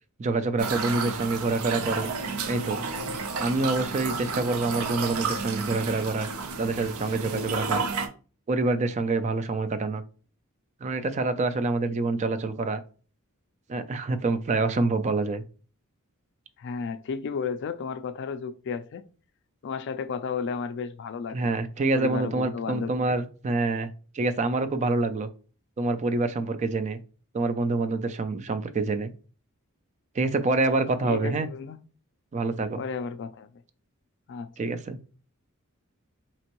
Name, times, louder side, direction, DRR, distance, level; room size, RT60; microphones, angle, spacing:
voice 1, 0.2-2.1 2.5-2.8 3.4-6.3 6.6-7.8 8.5-10.0 10.8-12.8 13.7-15.4 21.3-23.9 24.1-25.3 25.8-27.0 27.3-29.1 30.2-31.5 32.3-32.8 34.6-35.0, right 3 dB, 35° right, 0.4 m, -26 dB
sound 1, 0.6-8.1, right 4 dB, 85° right, 0.6 m, -31 dB
voice 2, 16.6-19.0 19.6-21.6 21.9-23.2 31.0-31.8 32.8-33.5 34.3-34.5, left 5 dB, 55° left, 0.3 m, -33 dB
4.4 x 2.9 x 2.9 m
head